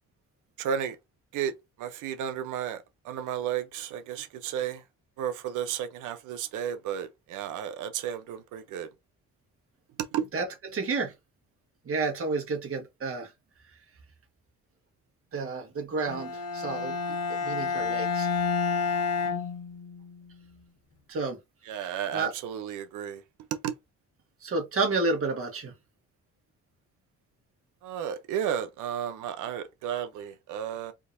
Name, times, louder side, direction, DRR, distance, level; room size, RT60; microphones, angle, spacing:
voice 1, 0.6-1.0 1.3-1.5 1.8-4.8 5.2-8.9 10.1-10.3 21.7-23.2 23.5-23.7 27.8-30.9, right 9 dB, 90° right, 0.7 m, -33 dB
voice 2, 10.3-11.1 11.8-13.3 15.3-16.9 17.3-18.3 21.1-21.4 21.8-22.3 24.4-25.7, right 3 dB, 45° right, 1.5 m, -30 dB
Bowed string instrument, 16.1-20.2, left 5 dB, 55° left, 0.9 m, -29 dB
3.7 x 2.7 x 2.6 m
cardioid pair, 90°, 30 cm